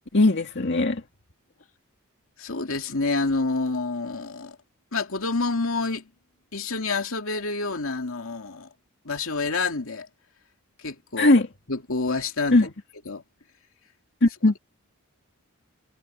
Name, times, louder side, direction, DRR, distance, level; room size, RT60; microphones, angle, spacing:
voice 1, 0.1-1.0 11.2-11.5 12.5-12.7 14.2-14.6, left 2 dB, 55° left, 2.1 m, -19 dB
voice 2, 2.4-4.6 4.9-6.0 6.5-8.7 9.0-10.1 10.8-11.3 11.7-12.7 13.1-13.2, left 3 dB, 70° left, 2.5 m, -28 dB
head